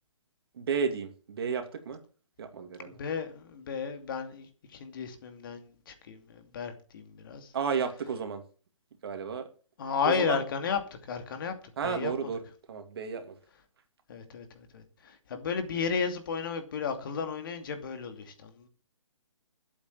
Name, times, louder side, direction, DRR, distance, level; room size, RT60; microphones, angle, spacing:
voice 1, 0.5-2.0 2.4-3.0 7.5-8.4 9.0-9.5 10.0-10.4 11.8-13.4, right 6 dB, 50° right, 2.5 m, -32 dB
voice 2, 2.9-7.5 9.8-10.8 11.1-11.5 11.8-12.1 14.1-18.7, left 6 dB, 40° left, 2.5 m, -33 dB
12.0 x 8.5 x 7.4 m
hypercardioid pair, 160°, 17 cm